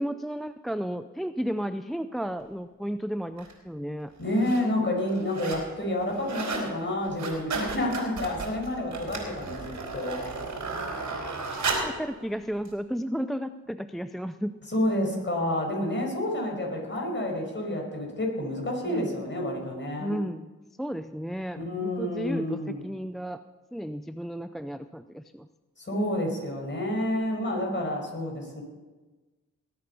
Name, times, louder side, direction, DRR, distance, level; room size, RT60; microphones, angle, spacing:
voice 1, 0.0-4.1 10.9-11.1 11.8-14.5 18.8-19.1 20.0-20.5 20.8-23.4 23.7-25.5, equal, ahead, 11 dB, 0.4 m, -33 dB
sound 1, 3.4-3.5 4.2-4.6 5.0-5.7 6.0-6.7 7.0-12.0 12.7-12.8, right 3 dB, 70° right, 4.0 m, -33 dB
voice 2, 4.2-10.2 14.7-20.1 21.6-22.8 25.8-28.6, left 1 dB, 35° left, 0 dB, 5.6 m, -29 dB
19.5 x 8.7 x 5.5 m, 1.2 s
cardioid pair, 60°, 31 cm